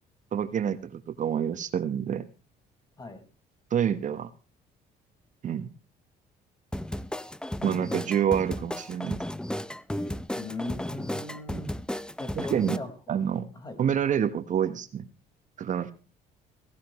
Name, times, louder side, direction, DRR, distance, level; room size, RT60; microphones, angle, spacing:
voice 1, 0.3-2.3 3.7-4.3 5.4-5.7 7.6-9.2 12.4-12.8 13.1-13.5 13.8-15.0 15.6-15.9, right 9 dB, 50° right, 11 dB, 1.2 m, -27 dB
sound 1, 6.7-12.8, left 1 dB, 5° left, 0.7 m, -34 dB
voice 2, 10.4-11.7 12.2-12.9 13.5-13.8, left 2 dB, 25° left, 6 dB, 4.9 m, -38 dB
17.0 x 16.5 x 3.1 m, 0.33 s
cardioid pair, 110°, 17 cm